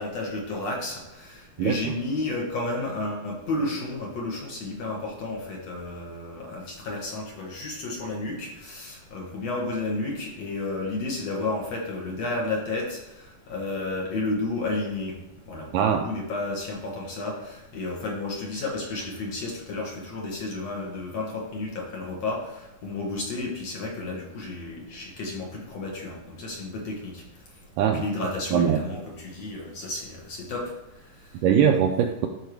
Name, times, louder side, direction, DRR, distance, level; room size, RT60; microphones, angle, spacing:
voice 1, 0.0-15.2 15.5-27.2 27.8-30.7 31.0-31.3, left 2 dB, 55° left, -2 dB, 2.2 m, -32 dB
voice 2, 1.6-1.9 15.7-16.0 27.8-28.0 28.5-28.8 31.4-32.3, right 8 dB, 80° right, 4 dB, 1.9 m, -21 dB
12.0 x 4.7 x 4.7 m, 0.97 s
omnidirectional pair, 4.3 m